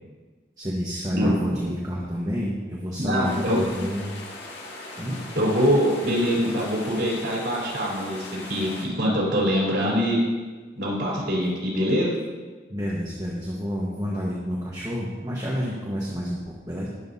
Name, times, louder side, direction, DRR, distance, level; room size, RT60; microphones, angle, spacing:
voice 1, 0.6-4.1 5.0-5.2 12.7-16.9, equal, 20° right, -5 dB, 1.4 m, -29 dB
voice 2, 3.0-3.6 5.4-8.2 8.5-10.2 10.8-12.1, equal, 80° right, -5 dB, 4.1 m, -23 dB
sound 1, 3.2-8.9, left 2 dB, 80° left, 2.2 m, -40 dB
20.0 x 7.8 x 2.8 m, 1.4 s
head